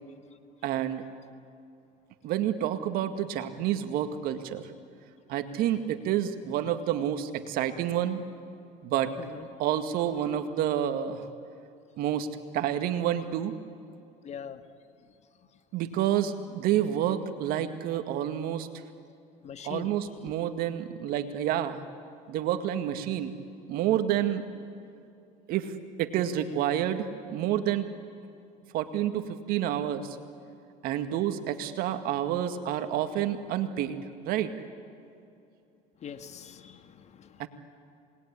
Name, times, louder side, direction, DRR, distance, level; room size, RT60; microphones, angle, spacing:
voice 1, 0.6-1.0 2.2-4.7 5.3-8.2 8.8-9.1 9.6-11.3 12.0-12.3 12.5-13.5 15.7-18.7 19.6-21.8 22.3-23.3 23.7-24.4 25.5-25.7 26.0-27.9 28.7-30.2 30.8-34.5 37.4-37.5, right 11 dB, 70° right, 8 dB, 2.1 m, -29 dB
voice 2, 14.2-14.6 19.4-19.9 20.2-20.3 36.0-37.5, left 8 dB, 45° left, 9 dB, 1.8 m, -42 dB
27.5 x 21.0 x 9.9 m, 2.7 s
supercardioid pair, 90°, 16 cm